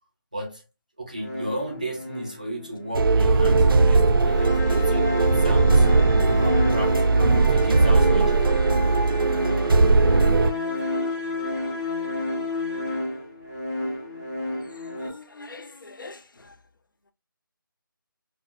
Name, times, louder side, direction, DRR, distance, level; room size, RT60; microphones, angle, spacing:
voice 1, 0.3-0.6 1.0-5.9 6.4-8.6, right 1 dB, 20° right, 0.4 m, -34 dB
sound 1, 1.2-15.1, left 2 dB, 15° left, 0.7 m, -31 dB
sound 2, 2.9-10.5, right 3 dB, 80° right, 0.4 m, -19 dB
voice 2, 14.7-16.6, left 3 dB, 65° left, 0.6 m, -44 dB
4.1 x 2.2 x 2.4 m
figure-of-eight pair, 180°, 12 cm